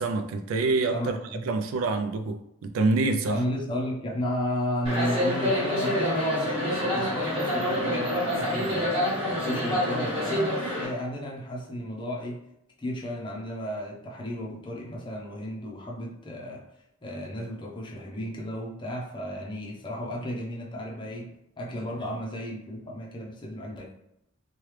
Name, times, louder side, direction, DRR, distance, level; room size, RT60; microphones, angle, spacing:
voice 1, 0.0-1.2 1.5-3.4, right 3 dB, 85° right, 7 dB, 0.3 m, -26 dB
voice 2, 0.9-1.5 3.3-9.0 9.3-12.4 12.8-16.6 17.0-23.9, equal, 25° left, -2 dB, 0.6 m, -33 dB
sound 1, 4.8-10.9, left 1 dB, 25° right, 1.3 m, -27 dB
3.1 x 2.3 x 3.2 m, 0.80 s
head